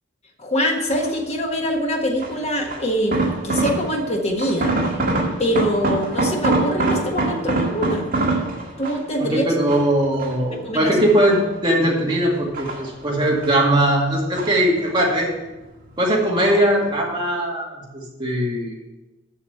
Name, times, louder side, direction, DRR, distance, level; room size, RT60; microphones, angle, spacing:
voice 1, 0.4-4.8 5.4-8.1 8.8-9.4 10.6-10.9, equal, 35° left, 1 dB, 1.4 m, -24 dB
sound 1, 0.9-1.3 2.2-4.1 4.4-9.2 9.7-10.6 11.0-11.8 12.3-13.7 13.9-15.1 15.4-16.0 16.4-16.8 17.1-17.2, right 2 dB, 50° right, 1.9 m, -25 dB
voice 2, 9.2-15.5 16.0-18.8, right 1 dB, 25° right, -2 dB, 2.1 m, -20 dB
7.4 x 6.5 x 6.5 m, 1.0 s
head